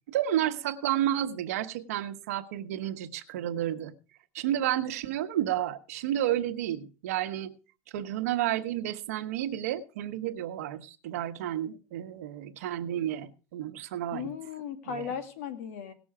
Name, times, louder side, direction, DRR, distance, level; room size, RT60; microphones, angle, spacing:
voice 1, 0.1-3.9 4.3-7.5 7.9-14.3 14.9-15.1, right 12 dB, 90° right, 9 dB, 1.1 m, -31 dB
voice 2, 14.1-15.9, left 7 dB, 85° left, 8 dB, 2.3 m, -36 dB
18.5 x 6.2 x 4.8 m, 0.35 s
supercardioid pair, 130°, 8 cm